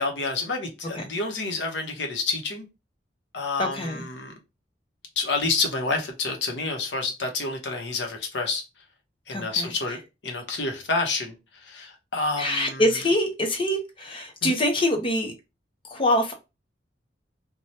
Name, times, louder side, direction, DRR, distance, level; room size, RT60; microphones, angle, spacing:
voice 1, 0.0-2.7 3.3-4.3 5.2-8.6 9.3-10.0 10.2-11.3 11.6-12.8 14.4-14.6, left 3 dB, 70° left, 0.8 m, -28 dB
voice 2, 3.6-4.0 9.3-9.7 12.4-15.3 15.8-16.3, left 1 dB, 30° left, 0.7 m, -25 dB
2.7 x 2.2 x 3.1 m
head